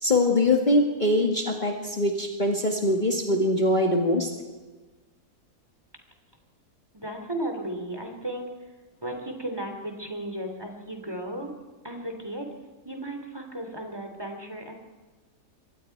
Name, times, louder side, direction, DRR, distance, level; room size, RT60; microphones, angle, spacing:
voice 1, 0.0-4.3, left 1 dB, 30° left, 0 dB, 1.9 m, -23 dB
voice 2, 6.9-8.5 9.0-11.5 11.8-12.5 12.8-14.7, right 1 dB, 15° right, 3 dB, 2.9 m, -35 dB
26.5 x 23.0 x 4.6 m, 1.3 s
omnidirectional pair, 1.6 m